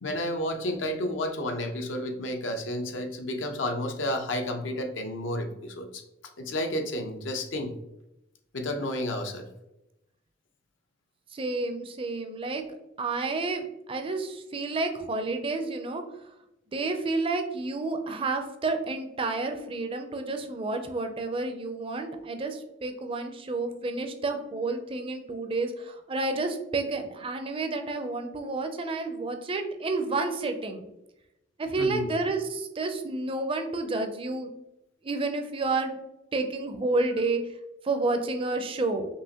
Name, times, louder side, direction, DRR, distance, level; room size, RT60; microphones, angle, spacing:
voice 1, 0.0-6.0 6.4-7.7 8.5-9.5 31.8-32.1, left 1 dB, 80° left, 5 dB, 0.7 m, -31 dB
voice 2, 11.3-12.6 13.0-16.0 16.7-30.9 31.6-34.5 35.0-36.0 36.3-37.4 37.8-39.1, right 3 dB, 30° right, 6 dB, 0.4 m, -30 dB
5.5 x 2.9 x 2.8 m, 0.90 s
head